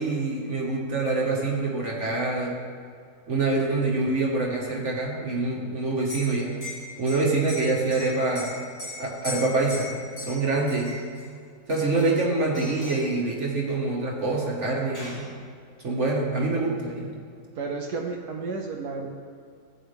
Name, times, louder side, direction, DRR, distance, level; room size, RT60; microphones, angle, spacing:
voice 1, 0.0-2.6 3.3-6.6 7.0-8.5 9.0-9.9 10.2-10.9 11.7-15.3 15.8-17.1, right 3 dB, 50° right, -2 dB, 1.8 m, -25 dB
Liquid, 6.0-11.3 11.7-12.3 12.5-13.1 14.3-14.4 14.7-15.3, left 2 dB, 60° left, 3.1 m, -39 dB
voice 2, 17.5-19.1, right 4 dB, 80° right, 1 dB, 1.4 m, -32 dB
16.0 x 9.3 x 3.5 m, 2.3 s
omnidirectional pair, 1.7 m